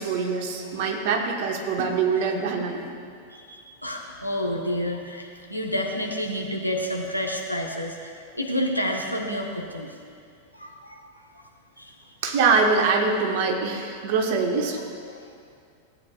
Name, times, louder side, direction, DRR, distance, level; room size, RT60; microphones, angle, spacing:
voice 1, 0.0-2.9 12.2-14.8, right 4 dB, 50° right, 2 dB, 1.1 m, -24 dB
voice 2, 3.3-9.9 10.5-11.0 11.8-11.9 15.1-15.2, equal, 90° left, 0 dB, 1.0 m, -29 dB
16.5 x 8.5 x 2.4 m, 2.3 s
figure-of-eight pair, 90°, 0 cm